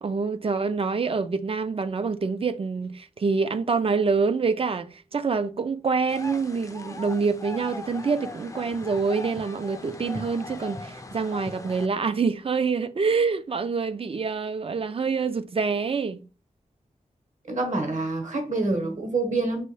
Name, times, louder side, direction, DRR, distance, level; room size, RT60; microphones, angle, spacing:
voice 1, 0.0-16.2, right 4 dB, 45° right, 0.4 m, -26 dB
sound 1, 6.1-11.9, left 2 dB, 25° left, 0.4 m, -39 dB
voice 2, 17.4-19.6, right 2 dB, 65° right, 1.2 m, -26 dB
5.3 x 2.3 x 3.2 m
wide cardioid pair, 95°, 14 cm